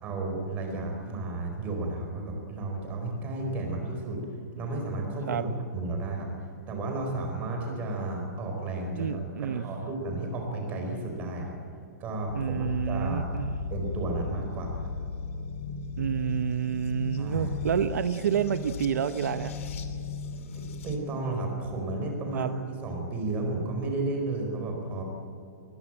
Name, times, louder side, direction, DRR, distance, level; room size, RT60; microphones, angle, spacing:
voice 1, 0.0-4.2 4.5-6.3 6.7-11.6 12.0-13.3 13.7-14.9 17.2-17.5 20.5-22.5 22.8-25.0, right 2 dB, 15° right, 2 dB, 4.4 m, -33 dB
voice 2, 9.0-9.7 12.3-13.6 16.0-19.5 22.3-22.5, right 8 dB, 70° right, 11 dB, 0.9 m, -29 dB
sound 1, 12.3-21.0, left 4 dB, 50° left, 2.5 m, -36 dB
22.0 x 21.0 x 9.0 m, 2.6 s
hypercardioid pair, 175°, 9 cm